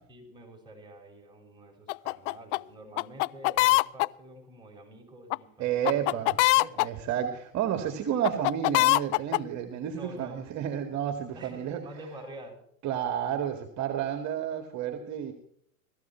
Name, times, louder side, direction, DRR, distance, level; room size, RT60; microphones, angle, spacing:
voice 1, 0.1-7.0 9.9-10.4 11.3-12.6, right 1 dB, 10° right, 0 dB, 6.8 m, -47 dB
sound 1, 1.9-2.6 3.0-4.1 5.3-5.4 5.8-6.9 8.2-9.4, left 23 dB, 55° left, 0.6 m, -22 dB
voice 2, 5.6-6.3 6.8-11.8 12.8-15.3, right 9 dB, 40° right, 7 dB, 2.2 m, -31 dB
18.0 x 14.5 x 4.6 m, 0.67 s
hypercardioid pair, 115°, 42 cm